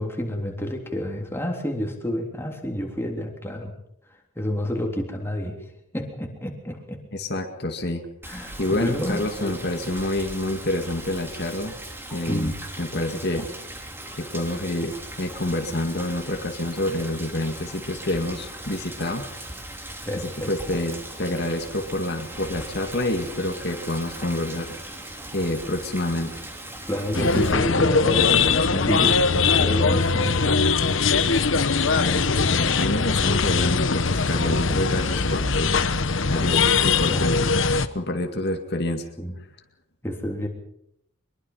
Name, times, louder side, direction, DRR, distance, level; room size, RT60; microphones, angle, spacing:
voice 1, 0.0-3.7 4.3-5.6 5.9-7.0 8.2-9.6 12.3-12.6 20.0-20.5 26.9-30.7 34.4-35.1 37.0-37.6 39.2-39.3 40.0-40.5, equal, 10° left, 1 dB, 3.4 m, -29 dB
voice 2, 7.1-8.0 8.6-11.8 12.1-13.5 14.2-19.2 20.5-24.8 25.3-26.3 31.8-35.8 36.3-37.5 37.9-39.1, left 1 dB, 50° left, 4 dB, 2.2 m, -27 dB
Rain, 8.2-27.5, right 1 dB, 10° right, 3.2 m, -39 dB
sound 1, 27.1-37.9, left 4 dB, 65° left, 1.1 m, -21 dB
24.0 x 22.5 x 5.7 m, 0.75 s
head